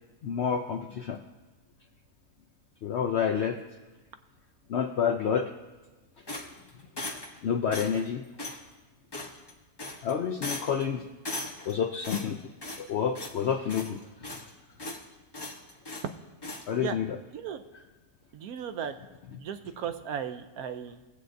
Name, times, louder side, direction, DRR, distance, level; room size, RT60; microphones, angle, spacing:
voice 1, 0.2-1.2 2.8-3.6 4.7-5.5 7.4-8.2 10.0-11.1 11.7-12.4 12.8-14.0 14.3-14.4 16.7-17.1, left 7 dB, 75° left, 6 dB, 0.6 m, -29 dB
sound 1, 6.3-7.4 7.7-8.1 8.4-8.6 9.1-9.5 9.8-10.1 10.4-10.8 11.2-11.7 12.0-12.9 13.1-13.4 13.7-14.5 14.8-15.0 15.3-16.1 16.4-16.7, left 2 dB, 25° left, 0.6 m, -38 dB
voice 2, 17.3-17.6 18.3-19.0 19.4-21.0, right 8 dB, 70° right, 9 dB, 1.0 m, -35 dB
20.0 x 7.9 x 2.6 m, 1.2 s
omnidirectional pair, 1.7 m